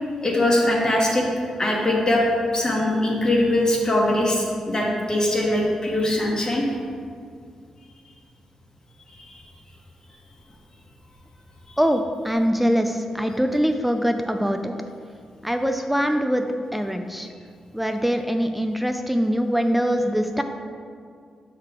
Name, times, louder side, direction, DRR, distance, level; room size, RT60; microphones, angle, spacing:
voice 1, 0.2-1.2 1.6-2.2 2.5-6.6, left 1 dB, 35° left, -2 dB, 1.2 m, -21 dB
voice 2, 11.8-14.7 15.4-16.5 16.7-17.3 17.7-20.4, equal, 5° right, 6 dB, 0.4 m, -23 dB
5.6 x 3.8 x 4.8 m, 2.2 s
supercardioid pair, 40°, 2 cm